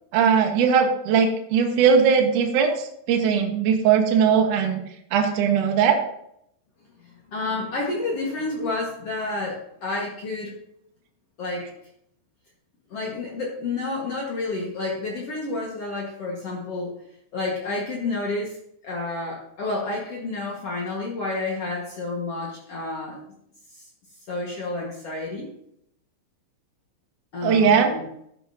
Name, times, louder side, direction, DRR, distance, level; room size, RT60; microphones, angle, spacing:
voice 1, 0.1-4.8 5.1-6.0 27.4-27.9, right 6 dB, 70° right, 3 dB, 2.0 m, -19 dB
voice 2, 7.0-10.5 11.4-11.6 12.9-16.9 17.3-18.6 18.8-23.2 23.7-23.9 24.3-25.5 27.3-28.0, left 2 dB, 90° left, -3 dB, 1.3 m, -30 dB
13.5 x 9.8 x 2.8 m, 0.74 s
omnidirectional pair, 5.5 m